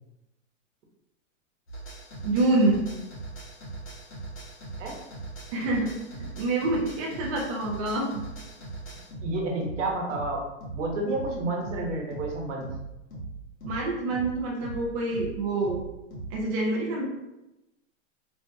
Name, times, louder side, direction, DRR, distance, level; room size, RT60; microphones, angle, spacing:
sound 1, 1.7-16.4, right 3 dB, 80° left, 1.3 m, -40 dB
voice 1, 2.2-2.8 5.5-5.9 6.2-8.2 13.6-15.8 16.3-17.1, right 2 dB, 30° right, -3 dB, 0.4 m, -26 dB
voice 2, 9.2-10.4 10.7-12.7, right 2 dB, 70° right, -1 dB, 1.0 m, -30 dB
3.1 x 2.1 x 2.7 m, 0.95 s
hypercardioid pair, 145°, 39 cm